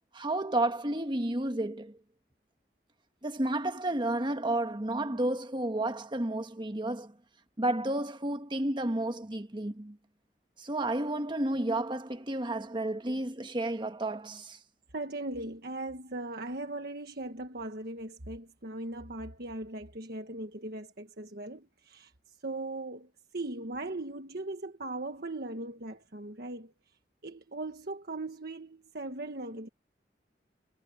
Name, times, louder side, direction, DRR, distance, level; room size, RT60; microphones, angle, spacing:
voice 1, 0.1-2.0 3.2-7.1 7.6-10.0 10.6-14.6, right 1 dB, 25° right, 1.5 m, -31 dB
voice 2, 14.9-27.0 27.2-29.7, right 2 dB, 60° right, 1.5 m, -39 dB
head